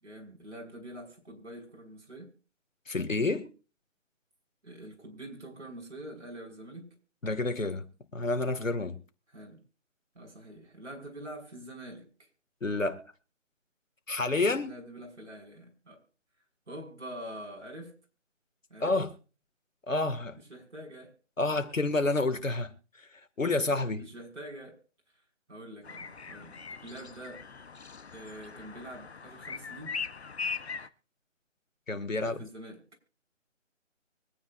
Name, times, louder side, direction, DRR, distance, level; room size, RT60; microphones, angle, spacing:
voice 1, 0.0-2.3 4.6-6.9 9.3-9.6 10.1-12.3 14.6-16.0 16.7-18.0 18.7-19.0 20.5-21.1 21.6-21.7 24.0-24.8 25.5-27.5 28.1-30.0 32.2-32.8, right 1 dB, 60° right, 6.0 m, -45 dB
voice 2, 2.9-3.5 7.2-7.9 8.1-9.0 12.6-13.0 14.1-14.8 18.8-19.1 19.9-20.4 21.4-22.7 23.4-24.1 31.9-32.4, left 2 dB, 85° left, 2.3 m, -29 dB
sound 1, 25.8-30.9, left 5 dB, 55° left, 1.1 m, -40 dB
24.5 x 9.6 x 2.6 m
figure-of-eight pair, 155°, 38 cm